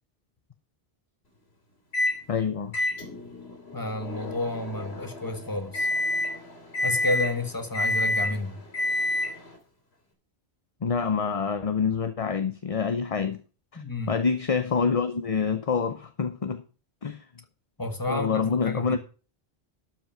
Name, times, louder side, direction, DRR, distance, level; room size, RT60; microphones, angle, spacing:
Microwave oven, 1.9-2.2 2.7-9.6, left 2 dB, 85° left, 3.0 m, -29 dB
voice 1, 2.3-2.7 10.8-13.4 13.7-16.6 17.0-17.2 18.1-19.0, left 5 dB, 40° left, 0.8 m, -27 dB
voice 2, 3.7-5.9 6.8-8.6 13.7-14.2 17.8-19.0, left 2 dB, 20° left, 1.5 m, -31 dB
12.5 x 5.9 x 5.7 m
omnidirectional pair, 1.0 m